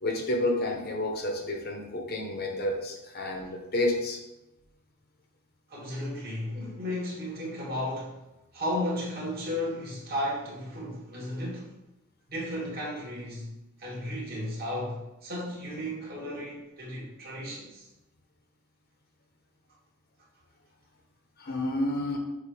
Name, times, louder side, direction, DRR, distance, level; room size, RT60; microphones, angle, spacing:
voice 1, 0.0-4.2 21.4-22.2, left 1 dB, 45° left, 2 dB, 0.9 m, -30 dB
voice 2, 5.7-8.2 8.5-11.7 12.3-13.5 13.8-17.9, left 1 dB, 45° right, -5 dB, 2.1 m, -34 dB
6.8 x 2.8 x 5.0 m, 0.94 s
head